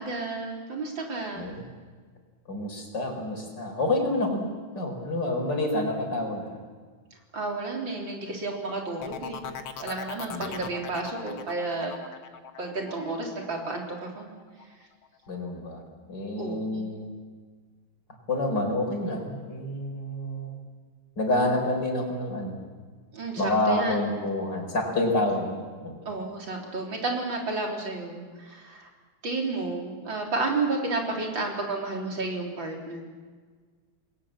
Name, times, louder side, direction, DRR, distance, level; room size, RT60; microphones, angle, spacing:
voice 1, 0.0-1.5 7.3-9.4 9.8-12.0 12.6-14.3 16.3-16.9 23.1-24.1 26.1-28.9 29.2-33.0, right 3 dB, 65° right, 0 dB, 4.5 m, -31 dB
voice 2, 2.5-4.5 4.8-6.6 10.3-10.6 15.3-15.8 16.1-17.1 18.3-20.6 21.2-22.6 23.4-26.0, left 1 dB, 55° left, 2 dB, 5.2 m, -28 dB
sound 1, 9.0-14.6 15.0-15.5, left 7 dB, 80° left, 2.1 m, -40 dB
28.0 x 21.0 x 7.6 m, 1.5 s
omnidirectional pair, 2.2 m